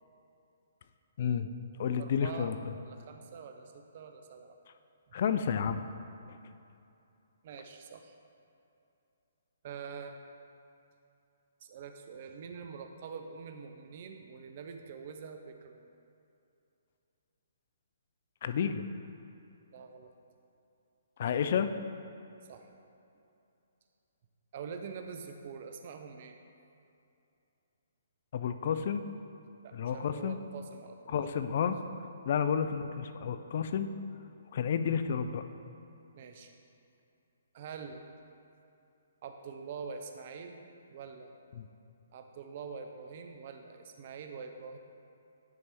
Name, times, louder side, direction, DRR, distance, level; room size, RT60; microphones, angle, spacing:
voice 1, 1.2-1.5 1.8-2.6 5.1-5.8 18.4-18.8 21.2-21.7 28.3-29.0 29.7-30.4 31.1-31.8 32.3-33.9 34.5-35.4 41.6-41.7, left 7 dB, 55° left, 10 dB, 0.4 m, -30 dB
voice 2, 2.0-4.6 5.1-5.2 7.4-8.2 9.6-10.2 11.6-15.9 19.7-20.1 22.5-22.7 24.5-26.4 29.6-31.2 36.1-36.5 37.5-38.0 39.2-40.6 40.9-41.3 42.1-44.8, right 6 dB, 50° right, 6 dB, 0.6 m, -45 dB
9.5 x 3.4 x 4.3 m, 2.8 s
hypercardioid pair, 140°, 0 cm